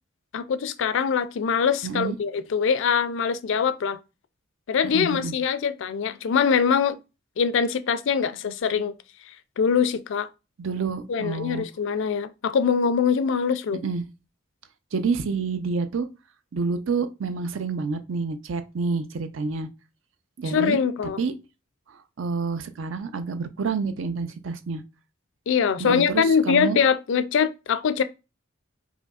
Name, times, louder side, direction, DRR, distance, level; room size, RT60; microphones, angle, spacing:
voice 1, 0.3-4.0 4.7-7.0 7.4-8.9 9.6-10.3 11.1-13.8 20.5-21.2 25.5-28.0, left 6 dB, 60° left, 0.4 m, -23 dB
voice 2, 1.8-2.2 4.8-5.3 10.6-11.6 13.8-14.0 14.9-16.1 16.5-19.7 20.4-20.8 21.2-21.3 21.9-24.8 25.8-26.8, right 4 dB, 65° right, 0.5 m, -28 dB
4.9 x 2.7 x 2.3 m
head